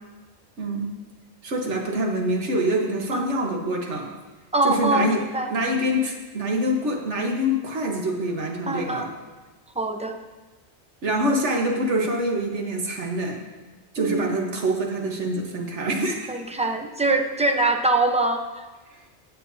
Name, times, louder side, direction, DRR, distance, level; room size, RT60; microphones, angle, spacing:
voice 1, 0.6-0.9 1.4-4.1 4.6-5.2 5.5-9.1 11.0-13.4 13.9-16.3, equal, 75° right, 1 dB, 1.5 m, -25 dB
voice 2, 4.5-5.5 8.7-9.1 9.8-10.2 14.0-14.3 16.3-18.6, right 2 dB, 10° right, 4 dB, 0.5 m, -23 dB
17.0 x 7.5 x 2.7 m, 1.2 s
omnidirectional pair, 1.2 m